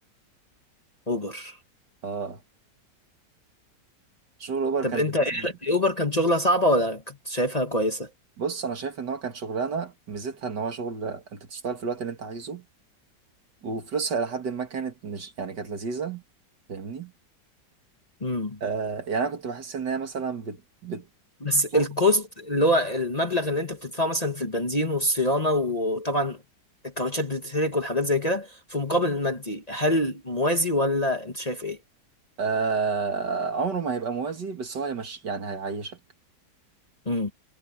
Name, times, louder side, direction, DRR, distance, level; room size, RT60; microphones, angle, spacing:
voice 1, 1.1-1.6 4.8-8.1 18.2-18.6 21.4-26.4 26.8-31.8 37.0-37.3, left 1 dB, 25° left, 1.4 m, -25 dB
voice 2, 2.0-2.4 4.4-5.0 5.3-5.4 8.4-12.6 13.6-16.2 16.7-17.1 18.6-21.1 21.7-21.9 32.4-36.0, right 5 dB, 70° right, 2.7 m, -30 dB
omnidirectional pair, 1.9 m